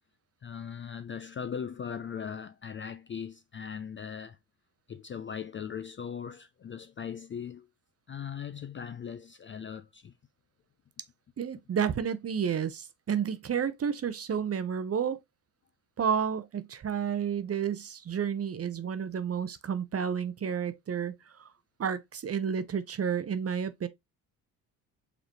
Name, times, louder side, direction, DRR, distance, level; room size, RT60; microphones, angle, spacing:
voice 1, 0.4-4.4 4.9-7.7 8.1-10.1, left 7 dB, 25° left, 0.4 m, -39 dB
voice 2, 11.4-15.2 16.0-21.5 21.8-23.9, right 7 dB, 30° right, 0.7 m, -31 dB
5.0 x 3.2 x 2.9 m
hypercardioid pair, 55°, 47 cm